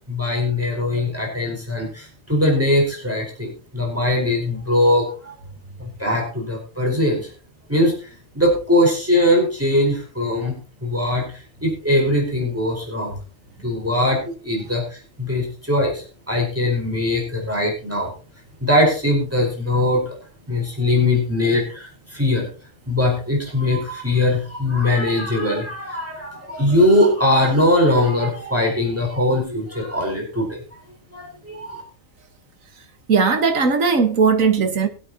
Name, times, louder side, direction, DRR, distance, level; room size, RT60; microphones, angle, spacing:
voice 1, 0.1-5.4 5.8-7.3 7.7-8.1 8.3-10.5 10.8-11.2 11.6-13.1 13.6-18.1 18.6-20.1 20.5-22.5 22.9-30.6 31.1-31.8, left 1 dB, 10° right, 4.6 m, -21 dB
voice 2, 33.1-34.9, right 5 dB, 75° right, 1.9 m, -18 dB
22.5 x 8.5 x 2.9 m
omnidirectional pair, 1.4 m